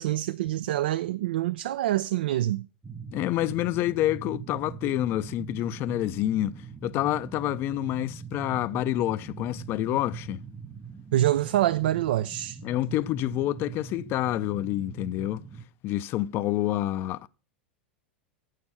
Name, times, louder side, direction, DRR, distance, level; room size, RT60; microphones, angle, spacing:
voice 1, 0.0-2.7 11.1-12.6, right 14 dB, 65° right, 0.4 m, -26 dB
sound 1, 2.8-15.7, right 6 dB, 10° right, 0.7 m, -42 dB
voice 2, 3.1-10.4 12.6-15.4 15.8-17.3, left 14 dB, 40° left, 0.5 m, -28 dB
8.5 x 6.5 x 5.6 m
hypercardioid pair, 90°, 6 cm